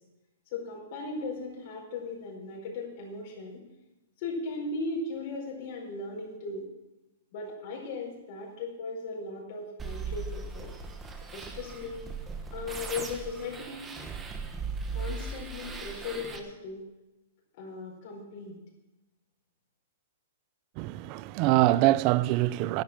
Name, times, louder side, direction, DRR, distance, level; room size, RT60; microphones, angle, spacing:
voice 1, 0.5-3.6 4.2-6.7 7.3-10.7 11.3-12.0 12.5-13.9 14.9-16.8 17.6-18.6, left 3 dB, 40° left, 4.8 m, -37 dB
sound 1, 9.8-16.4, right 4 dB, 10° right, 1.2 m, -38 dB
voice 2, 20.8-22.8, right 16 dB, 30° right, 0.4 m, -24 dB
11.5 x 10.5 x 7.5 m
hypercardioid pair, 165°, 0 cm